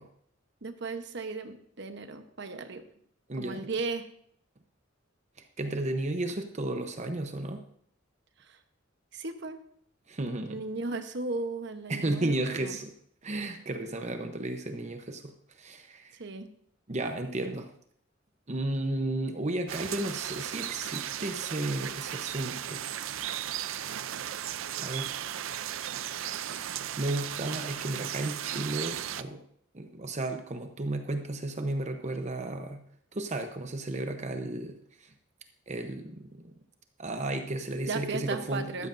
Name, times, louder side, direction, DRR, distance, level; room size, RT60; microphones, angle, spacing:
voice 1, 0.6-2.8 3.3-4.1 8.4-8.6 9.1-9.6 10.5-12.8 16.2-16.5 37.9-38.9, right 3 dB, 60° right, 8 dB, 1.0 m, -36 dB
voice 2, 3.3-3.7 5.4-7.6 10.1-10.6 11.9-12.9 13.2-15.3 15.6-16.2 16.9-17.7 18.5-22.8 24.8-25.1 26.5-29.4 29.7-32.8 33.1-35.1 35.7-36.5 37.0-38.9, right 2 dB, 35° right, 6 dB, 0.9 m, -33 dB
sound 1, 19.7-29.2, right 11 dB, 90° right, 0.5 m, -36 dB
13.5 x 13.0 x 2.6 m, 0.65 s
head